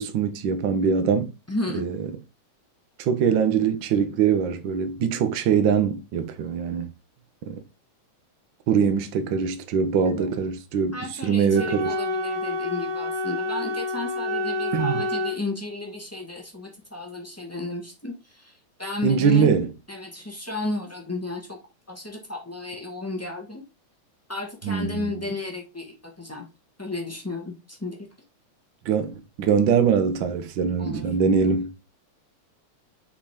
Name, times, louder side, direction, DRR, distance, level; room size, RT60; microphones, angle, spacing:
voice 1, 0.0-1.3 1.7-2.1 3.0-6.9 7.4-7.6 8.7-11.0 11.2-11.9 14.7-15.0 19.0-19.7 24.6-25.1 28.8-31.7, right 6 dB, 60° right, 1.2 m, -22 dB
voice 2, 1.5-1.8 10.0-10.3 10.9-19.6 19.9-21.6 21.9-23.6 24.3-26.5 26.8-28.1 30.8-31.1, left 2 dB, 20° left, 0.3 m, -33 dB
Wind instrument woodwind instrument, 11.5-15.4, left 2 dB, 85° right, 3.4 m, -28 dB
7.2 x 4.9 x 3.6 m
omnidirectional pair, 3.5 m